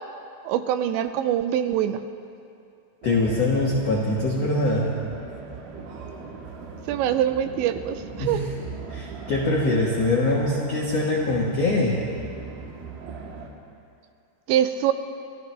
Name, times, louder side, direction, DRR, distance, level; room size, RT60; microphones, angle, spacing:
voice 1, 0.5-2.0 6.9-8.5 14.5-14.9, right 10 dB, 85° right, 10 dB, 2.8 m, -24 dB
voice 2, 3.0-4.9 8.2-8.5 8.9-12.0, left 2 dB, 80° left, -3 dB, 1.4 m, -23 dB
sound 1, 3.0-13.5, right 5 dB, 65° right, 2.9 m, -39 dB
27.0 x 14.0 x 3.3 m, 2.4 s
omnidirectional pair, 5.2 m